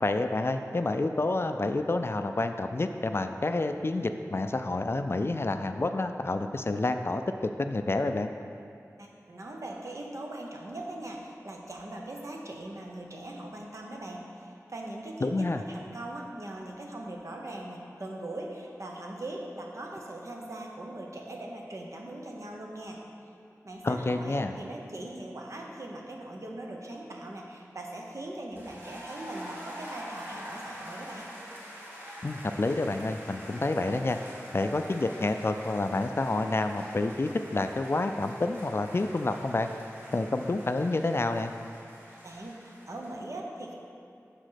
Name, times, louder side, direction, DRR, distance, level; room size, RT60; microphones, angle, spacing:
voice 1, 0.0-8.3 15.2-15.6 23.8-24.6 32.2-34.2 34.5-39.7 40.1-41.5, left 2 dB, 45° left, 7 dB, 0.4 m, -29 dB
voice 2, 9.0-23.0 23.6-31.3 42.1-43.7, right 1 dB, 60° right, 0 dB, 1.0 m, -40 dB
sound 1, 28.5-43.1, equal, 40° right, 1.9 m, -45 dB
6.4 x 5.0 x 5.8 m, 2.5 s
wide cardioid pair, 60°, 6 cm